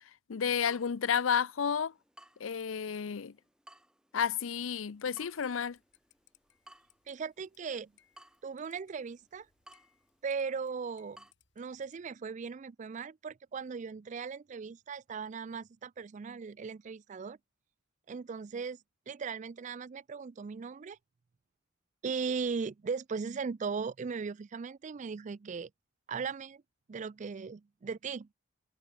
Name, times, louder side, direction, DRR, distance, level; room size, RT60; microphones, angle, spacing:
voice 1, 0.3-1.9 2.4-3.3 4.1-5.8, left 7 dB, 85° left, 0.5 m, -31 dB
Water tap faucet / Drip, 0.6-11.3, right 1 dB, 5° right, 1.2 m, -61 dB
sound 1, 4.8-12.0, left 11 dB, 60° left, 5.2 m, -71 dB
voice 2, 7.1-7.9 8.4-9.5 10.2-11.2 11.6-17.4 18.1-18.8 19.1-21.0 22.0-25.7 26.1-26.6 26.9-28.3, right 5 dB, 40° right, 0.4 m, -38 dB
head